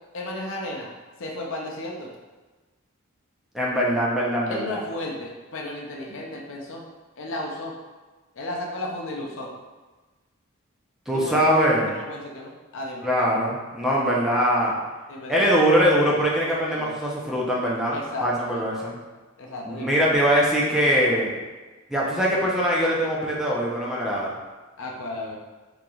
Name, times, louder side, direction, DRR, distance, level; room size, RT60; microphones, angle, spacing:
voice 1, 0.1-0.9 1.2-2.1 4.5-6.9 7.2-7.7 8.4-9.5 11.1-13.3 15.1-15.5 16.7-17.0 17.9-18.7 19.4-20.0 24.8-25.4, left 1 dB, 65° left, -1 dB, 0.6 m, -34 dB
voice 2, 3.5-4.8 11.1-11.9 13.0-14.7 15.3-19.0 19.7-21.3 21.9-24.3, equal, ahead, -5 dB, 0.5 m, -22 dB
3.8 x 3.1 x 2.3 m, 1.3 s
head